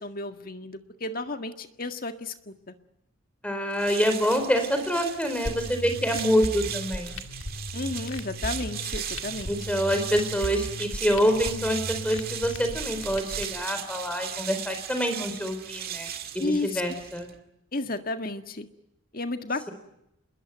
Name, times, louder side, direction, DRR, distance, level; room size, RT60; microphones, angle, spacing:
voice 1, 0.0-2.7 7.7-9.5 16.4-16.8 17.7-18.7 19.1-19.7, left 2 dB, 40° left, 7 dB, 1.8 m, -32 dB
voice 2, 3.4-7.2 9.5-16.1 16.3-17.3, equal, 5° left, 6 dB, 4.4 m, -26 dB
sound 1, 3.7-17.4, right 9 dB, 45° right, 2.2 m, -37 dB
sound 2, 5.4-13.4, left 1 dB, 65° left, 2.1 m, -37 dB
27.0 x 21.5 x 9.4 m, 0.83 s
head